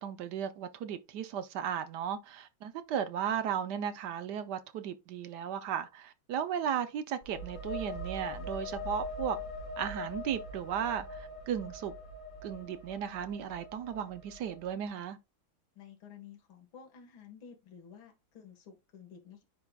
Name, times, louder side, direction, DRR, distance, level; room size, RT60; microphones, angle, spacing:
voice 1, 0.0-9.4 9.8-11.9 12.4-15.2, right 8 dB, 70° right, 1.1 m, -35 dB
sound 1, 7.2-14.8, left 2 dB, 45° left, 4.0 m, -42 dB
voice 2, 15.8-19.4, left 7 dB, 70° left, 2.3 m, -52 dB
9.7 x 4.7 x 2.3 m
omnidirectional pair, 2.3 m